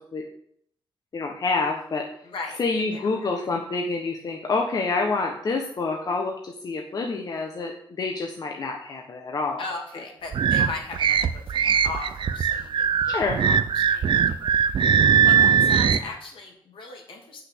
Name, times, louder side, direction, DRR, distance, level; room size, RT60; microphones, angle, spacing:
voice 1, 1.1-2.1 2.6-9.6 10.6-10.7 13.0-13.4, left 3 dB, 45° left, 2 dB, 1.1 m, -27 dB
voice 2, 2.2-2.6 2.9-3.5 9.6-17.4, left 3 dB, 70° left, 1 dB, 2.7 m, -38 dB
sound 1, 10.3-16.0, right 7 dB, 60° right, 0.6 m, -20 dB
8.5 x 6.2 x 7.9 m, 0.67 s
wide cardioid pair, 155°, 9 cm